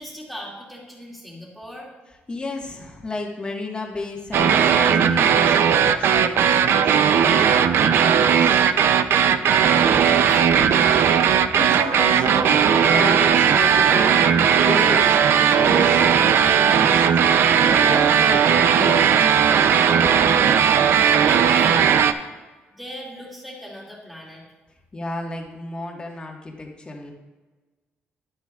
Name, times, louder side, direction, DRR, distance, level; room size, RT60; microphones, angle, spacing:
voice 1, 0.0-1.9 9.8-10.4 20.6-22.0 22.7-24.4, equal, ahead, -4 dB, 2.3 m, -39 dB
voice 2, 2.3-8.6 11.5-17.1 17.6-19.8 24.9-27.1, left 2 dB, 25° left, 0 dB, 1.5 m, -33 dB
sound 1, 4.3-22.1, right 8 dB, 70° right, 0.5 m, -17 dB
11.5 x 8.4 x 2.4 m, 1.3 s
cardioid pair, 115°, 4 cm